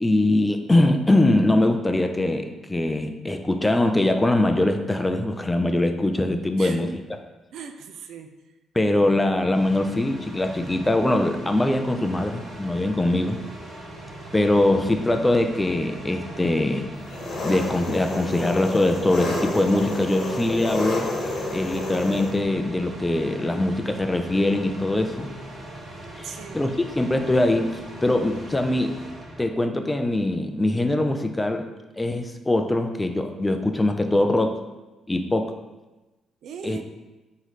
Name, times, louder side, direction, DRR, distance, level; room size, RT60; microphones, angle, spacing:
voice 1, 0.0-7.0 8.7-13.4 14.3-16.8 17.4-21.1 21.5-25.3 26.2-28.9 29.4-31.7 32.0-34.6 35.1-35.5 36.6-36.8, left 1 dB, 15° left, 6 dB, 0.4 m, -22 dB
voice 2, 7.5-8.3 26.2-26.6 36.4-36.8, right 7 dB, 70° right, 6 dB, 0.4 m, -39 dB
sound 1, 9.5-29.4, right 1 dB, 50° right, 1.4 m, -40 dB
Engine, 17.0-22.3, left 2 dB, 55° left, 1.3 m, -29 dB
3.8 x 3.0 x 4.1 m, 1.1 s
cardioid pair, 90°, 0 cm